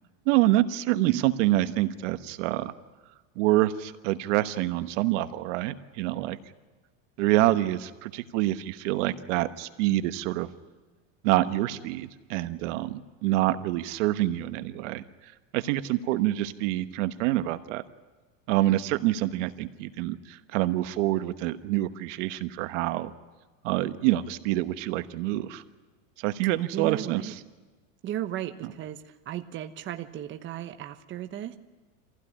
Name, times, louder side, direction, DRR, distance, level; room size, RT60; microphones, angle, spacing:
voice 1, 0.3-2.7 3.4-6.4 7.2-10.5 11.2-15.0 15.5-17.8 18.5-23.1 23.6-25.6 26.2-27.2, right 15 dB, 70° right, 11 dB, 1.2 m, -26 dB
voice 2, 26.7-27.3 28.0-31.6, right 11 dB, 30° right, 7 dB, 1.1 m, -35 dB
26.0 x 16.0 x 9.9 m, 1.3 s
supercardioid pair, 150°, 38 cm